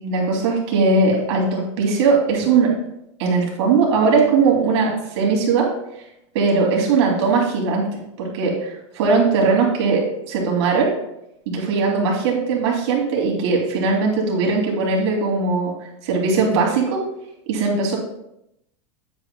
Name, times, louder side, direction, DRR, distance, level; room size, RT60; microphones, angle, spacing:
voice 1, 0.0-2.7 3.2-5.7 6.3-10.9 11.5-15.7 16.0-17.0 17.5-18.0, right 4 dB, 65° right, -1 dB, 2.8 m, -19 dB
9.5 x 8.2 x 2.3 m, 0.81 s
supercardioid pair, 150°, 15 cm